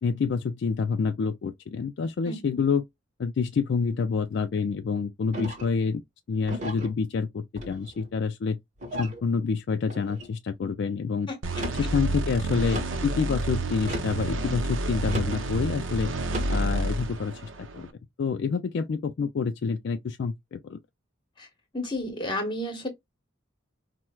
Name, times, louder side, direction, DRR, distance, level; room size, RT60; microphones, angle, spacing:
voice 1, 0.0-2.9 3.2-6.0 6.3-8.6 9.0-11.3 11.7-16.1 16.5-17.9 18.2-20.8, left 5 dB, 55° left, 0.3 m, -28 dB
voice 2, 2.2-2.6 11.3-11.4 21.4-21.5 21.7-22.9, left 1 dB, 25° left, 1.0 m, -32 dB
sound 1, 5.3-5.8 6.5-6.9 7.6-8.1 8.8-9.2 9.9-10.3 11.4-11.9 12.7-13.1 13.8-14.3 15.1-15.4 16.2-16.6, equal, 35° right, 1.1 m, -35 dB
sound 2, 11.4-17.9, right 2 dB, 70° right, 0.6 m, -30 dB
4.3 x 2.1 x 2.2 m
head